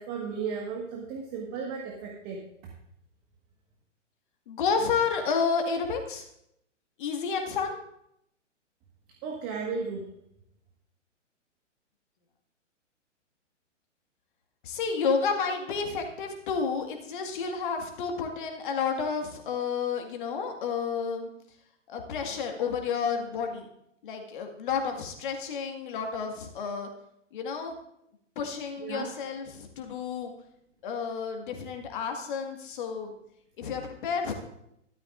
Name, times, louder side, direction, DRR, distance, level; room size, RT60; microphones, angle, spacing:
voice 1, 0.0-2.4 9.2-10.1 28.8-29.1, right 5 dB, 25° right, 0 dB, 1.7 m, -34 dB
voice 2, 4.5-6.3 7.0-7.8 14.6-21.3 21.9-23.7 24.0-26.9 27.3-27.8 28.4-30.3 30.8-33.1 33.6-34.3, left 5 dB, 40° left, 4 dB, 1.9 m, -30 dB
13.0 x 12.5 x 2.6 m, 0.78 s
figure-of-eight pair, 120°, 37 cm